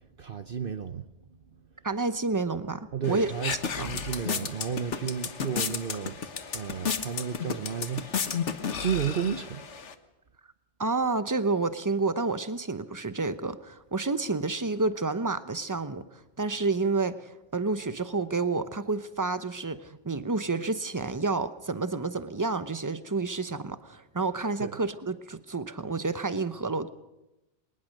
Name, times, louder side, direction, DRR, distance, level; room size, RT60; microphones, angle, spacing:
voice 1, 0.2-1.1 2.9-8.3 8.7-9.7 24.6-24.8, right 7 dB, 55° right, 1.0 m, -32 dB
voice 2, 1.8-3.3 3.8-3.9 10.8-16.1 16.4-26.9, right 3 dB, 20° right, 0.8 m, -29 dB
sound 1, 3.0-9.9, left 6 dB, 75° left, 1.5 m, -33 dB
22.0 x 19.0 x 6.5 m
omnidirectional pair, 1.2 m